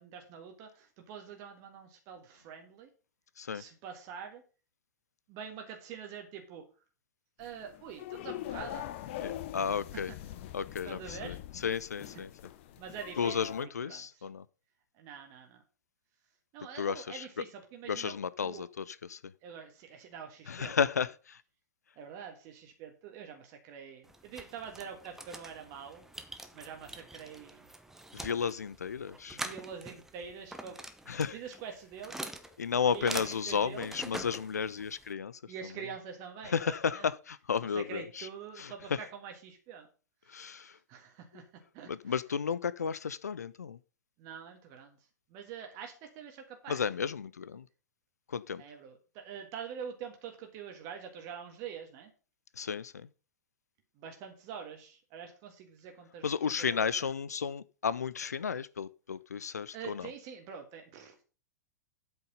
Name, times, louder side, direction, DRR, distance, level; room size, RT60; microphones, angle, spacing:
voice 1, 0.0-2.9 3.5-4.4 5.3-6.6 7.4-9.1 10.1-10.3 10.8-11.4 12.1-12.2 12.7-13.5 13.8-14.3 14.9-15.6 16.5-18.7 19.4-20.7 21.9-26.0 26.5-27.7 29.3-30.8 31.3-32.3 32.9-34.0 35.5-37.1 37.6-39.9 40.2-42.2 44.2-46.8 48.6-52.1 53.9-57.1 59.7-61.2, right 7 dB, 40° right, 1.6 m, -46 dB
sound 1, 7.4-13.7, left 13 dB, 45° left, 0.8 m, -43 dB
voice 2, 9.2-10.1 10.5-11.3 11.6-12.3 13.2-14.4 16.8-17.2 17.9-19.2 20.5-21.4 28.1-29.4 31.1-31.3 32.6-35.4 36.5-38.3 38.6-39.0 40.3-40.8 41.9-43.8 46.7-47.6 48.3-48.6 52.6-53.1 56.2-60.1, left 6 dB, 70° left, 0.5 m, -33 dB
sound 2, 24.0-35.1, right 1 dB, 5° right, 1.0 m, -45 dB
8.3 x 6.4 x 5.3 m
figure-of-eight pair, 100°, 9 cm